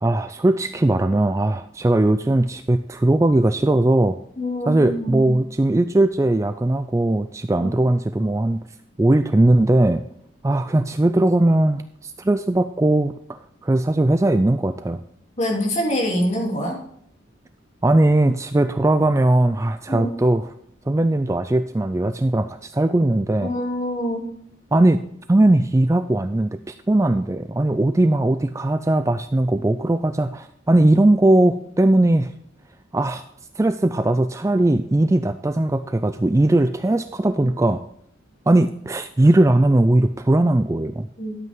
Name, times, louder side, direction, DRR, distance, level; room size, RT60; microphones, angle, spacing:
voice 1, 0.0-4.2 4.7-8.6 9.0-10.1 10.4-15.0 17.8-20.5 20.9-23.5 24.7-25.0 25.3-32.3 32.9-33.2 33.6-37.8 38.5-41.1, right 1 dB, 15° right, 10 dB, 0.3 m, -19 dB
voice 2, 4.4-5.3 7.6-7.7 15.4-16.8 19.9-20.1 23.4-24.2 41.2-41.4, equal, 35° left, -1 dB, 3.0 m, -25 dB
12.5 x 8.2 x 3.7 m, 0.70 s
head